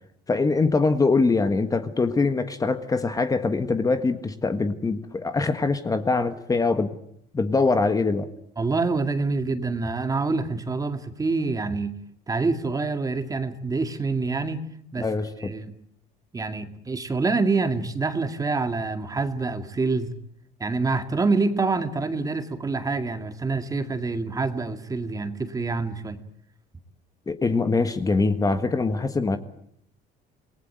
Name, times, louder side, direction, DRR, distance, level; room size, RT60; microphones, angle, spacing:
voice 1, 0.3-6.9 7.3-8.3 15.0-15.5 27.3-29.4, left 3 dB, 20° left, 9 dB, 1.6 m, -23 dB
voice 2, 8.6-11.9 12.3-14.6 14.9-15.1 15.4-15.6 16.3-20.1 20.6-26.2, right 3 dB, 20° right, 8 dB, 2.1 m, -26 dB
27.5 x 19.5 x 9.1 m, 0.70 s
cardioid pair, 130°, 18 cm